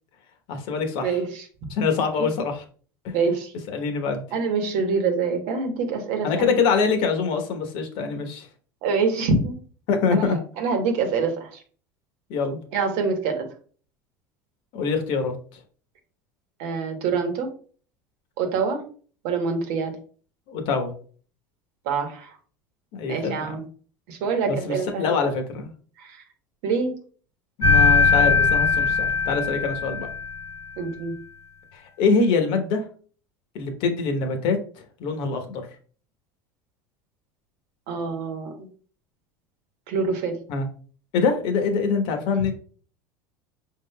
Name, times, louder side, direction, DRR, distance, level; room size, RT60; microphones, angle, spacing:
voice 1, 0.5-1.2 1.7-2.6 3.0-3.1 3.7-4.2 6.2-8.5 9.9-10.4 12.3-12.6 14.7-15.3 20.5-20.9 22.9-23.5 24.5-25.7 27.6-30.1 31.7-32.9 33.5-34.6 35.0-35.6 40.5-40.7 41.1-42.5, left 4 dB, 65° left, 5 dB, 1.0 m, -24 dB
voice 2, 1.0-1.4 3.1-3.5 4.3-6.5 8.8-9.6 10.1-11.6 12.7-13.4 16.6-17.5 18.4-18.8 19.2-19.9 21.8-22.3 23.1-23.6 24.1-25.2 26.0-26.2 26.6-26.9 30.8-31.1 37.9-38.5 39.9-40.4, right 4 dB, 70° right, 4 dB, 1.1 m, -25 dB
sound 1, 27.6-30.5, left 5 dB, 35° left, 1.0 m, -20 dB
5.1 x 3.6 x 2.2 m, 0.42 s
supercardioid pair, 105°, 10 cm